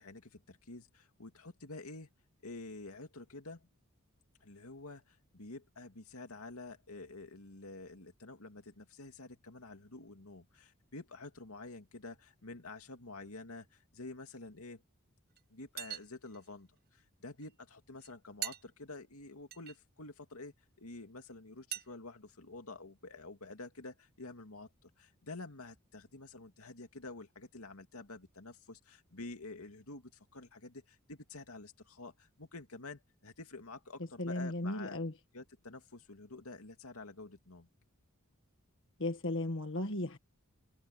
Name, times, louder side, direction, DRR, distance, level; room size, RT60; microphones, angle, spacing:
voice 1, 0.0-2.1 2.4-3.7 4.4-14.8 15.5-35.0 35.3-37.7, left 2 dB, 85° left, 2.5 m, -49 dB
sound 1, 15.4-15.5 15.8-16.5 17.4-17.5 18.0-18.1 18.4-18.6 19.5-19.8 21.7-21.9, right 12 dB, 45° right, 0.7 m, -40 dB
voice 2, 34.2-35.1 39.0-40.2, left 1 dB, 60° left, 1.8 m, -35 dB
head